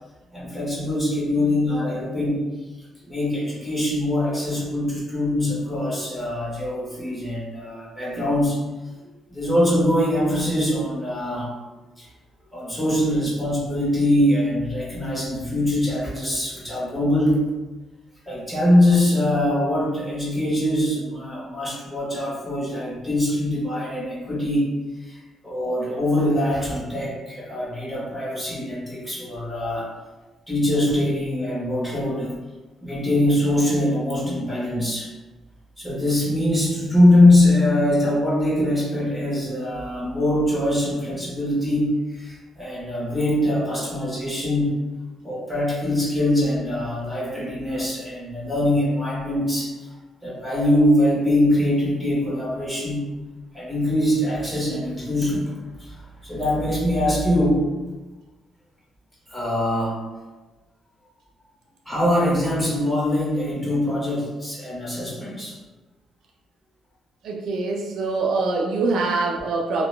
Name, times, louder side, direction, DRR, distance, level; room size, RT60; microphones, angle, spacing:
voice 1, 0.3-2.4 3.0-8.6 9.3-11.5 12.0-12.1 12.5-17.4 18.3-24.7 25.0-29.9 30.5-32.3 32.8-35.1 35.8-44.7 45.2-49.7 50.2-53.1 53.5-55.5 55.8-57.6 59.3-60.0 61.8-65.5, left 1 dB, 5° left, -7 dB, 1.1 m, -22 dB
voice 2, 67.2-69.9, right 3 dB, 75° right, 0 dB, 0.3 m, -24 dB
2.8 x 2.0 x 2.2 m, 1.1 s
cardioid pair, 90°, 0 cm